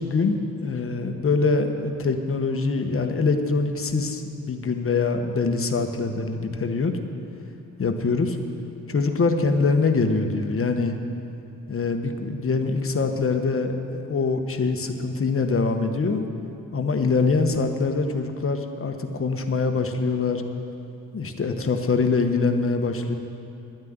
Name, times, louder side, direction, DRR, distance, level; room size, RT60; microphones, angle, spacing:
voice 1, 0.0-6.9 7.8-8.4 8.9-10.9 11.7-16.2 16.7-20.4 21.1-23.1, left 4 dB, 40° left, 5 dB, 1.3 m, -24 dB
10.5 x 9.7 x 9.6 m, 2.7 s
cardioid pair, 85°, 33 cm